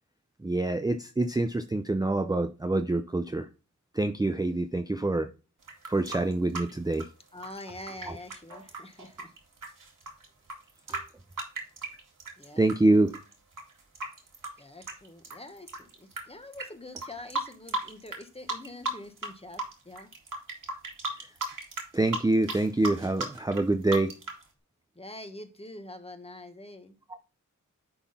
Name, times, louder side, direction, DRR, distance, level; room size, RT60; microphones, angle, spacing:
voice 1, 0.4-3.5 3.9-5.3 5.9-7.1 8.1-8.2 10.9-11.0 12.6-13.2 21.2-21.3 21.9-24.1, right 2 dB, 10° right, 0.5 m, -26 dB
sound 1, 5.6-12.7 13.1-16.2 16.5-16.7 17.0-18.2 18.5-19.3 19.5-24.4, right 2 dB, 80° right, 2.2 m, -36 dB
voice 2, 7.3-9.3 12.4-12.9 14.6-20.1 24.9-27.0, left 1 dB, 20° left, 1.3 m, -45 dB
10.0 x 3.9 x 4.1 m
wide cardioid pair, 100°, 31 cm